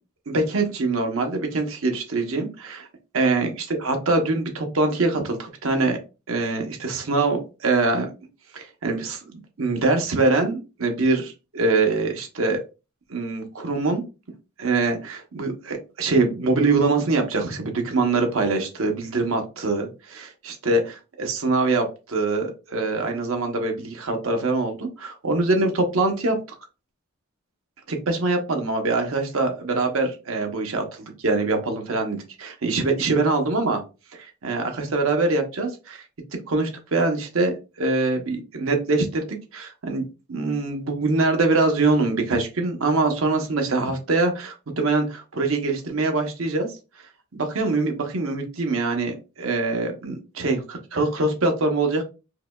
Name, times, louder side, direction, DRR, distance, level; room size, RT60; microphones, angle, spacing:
voice 1, 0.3-2.9 3.1-3.5 3.8-6.0 6.3-8.1 8.5-12.6 13.1-14.0 14.6-26.4 27.9-33.8 34.1-36.0 36.5-39.2 39.5-40.0 40.3-46.7 47.3-52.0, right 3 dB, 75° right, 4 dB, 0.8 m, -24 dB
4.7 x 2.2 x 2.2 m, 0.30 s
head